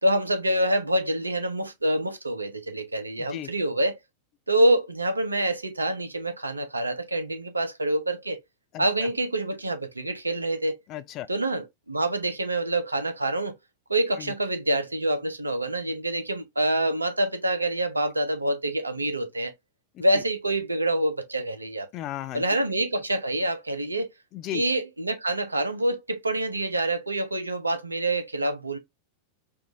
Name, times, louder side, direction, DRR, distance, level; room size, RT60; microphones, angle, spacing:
voice 1, 0.0-4.0 4.5-8.4 8.8-10.8 11.3-13.6 13.9-19.5 20.0-21.9 22.3-24.1 24.5-28.8, right 1 dB, 80° right, 0.6 m, -26 dB
voice 2, 3.2-3.5 8.7-9.1 10.9-11.3 14.2-14.3 20.1-20.2 21.9-22.4 24.3-24.6, left 13 dB, 35° left, 0.4 m, -35 dB
4.6 x 2.4 x 2.6 m
figure-of-eight pair, 90°, 0 cm